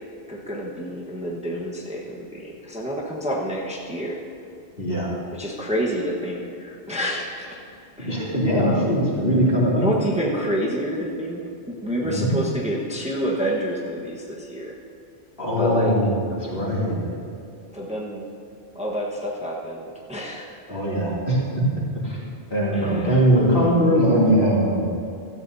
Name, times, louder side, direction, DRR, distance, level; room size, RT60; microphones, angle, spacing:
voice 1, 0.3-4.2 5.3-7.6 8.0-8.2 8.6-8.8 9.8-14.7 15.6-15.9 17.7-18.3 18.7-20.6 22.7-23.2, equal, 5° right, -3 dB, 1.2 m, -28 dB
voice 2, 4.8-5.1 8.0-9.9 12.0-12.3 15.4-17.0 20.7-21.6 22.0-22.2 22.5-24.9, equal, 60° left, -6 dB, 3.1 m, -21 dB
16.0 x 14.0 x 2.8 m, 2.5 s
omnidirectional pair, 1.1 m